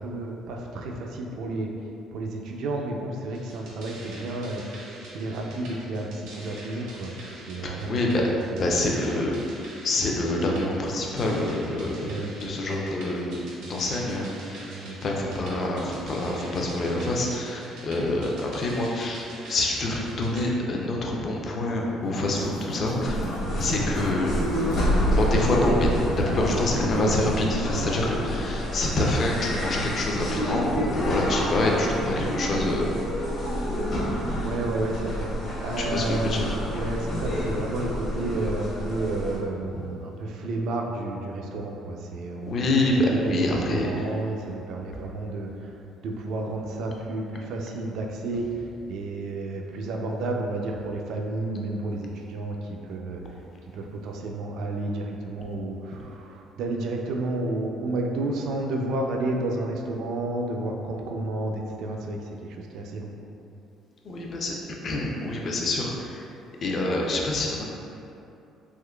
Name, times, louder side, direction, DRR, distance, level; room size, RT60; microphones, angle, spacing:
voice 1, 0.0-1.7 2.1-4.8 5.1-9.0 12.1-12.3 14.7-15.0 23.4-23.6 33.5-53.4 53.7-63.1, right 2 dB, 65° right, 1 dB, 0.3 m, -31 dB
sound 1, 3.3-20.5, right 1 dB, 90° right, 0.8 m, -44 dB
voice 2, 7.6-8.2 8.5-9.3 9.8-12.1 12.4-14.6 15.0-23.2 23.6-24.3 25.1-25.9 26.2-32.9 35.8-36.5 39.7-39.9 42.5-43.9 64.0-66.3 66.6-67.6, left 1 dB, 40° left, -1 dB, 0.4 m, -26 dB
sound 2, 22.0-27.2, equal, 85° left, 0.5 m, -36 dB
sound 3, 23.0-39.4, equal, 55° left, 0.9 m, -28 dB
3.6 x 3.0 x 2.2 m, 2.7 s
cardioid pair, 140°, 0 cm